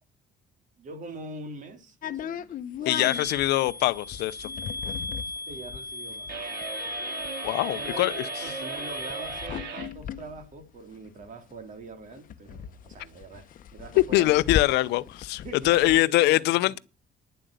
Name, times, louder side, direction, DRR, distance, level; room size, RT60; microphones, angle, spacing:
voice 1, 0.8-2.5 2.8-3.2 5.5-6.3 7.7-14.4 15.4-16.8, right 3 dB, 50° right, 3.1 m, -43 dB
sound 1, 2.0-11.5 11.8-11.9 12.1-16.1, left 9 dB, 55° left, 0.9 m, -37 dB
voice 2, 2.9-4.5 7.4-8.5 14.0-16.8, left 17 dB, 85° left, 0.7 m, -23 dB
sound 2, 2.9-9.5, left 2 dB, 20° left, 0.8 m, -37 dB
sound 3, 6.3-9.9, right 6 dB, 75° right, 4.1 m, -37 dB
10.5 x 7.6 x 8.0 m
cardioid pair, 110°, 17 cm